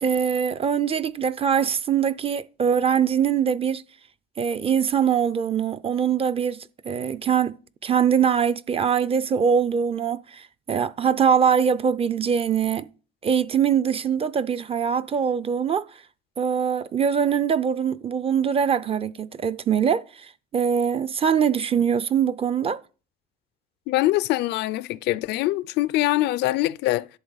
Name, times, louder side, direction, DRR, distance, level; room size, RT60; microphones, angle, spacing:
voice 1, 0.0-3.8 4.4-12.9 13.2-15.9 16.4-22.8, right 7 dB, 35° right, 0.5 m, -23 dB
voice 2, 23.9-27.1, left 16 dB, 80° left, 0.5 m, -23 dB
11.0 x 7.3 x 4.0 m
cardioid pair, 110°, 17 cm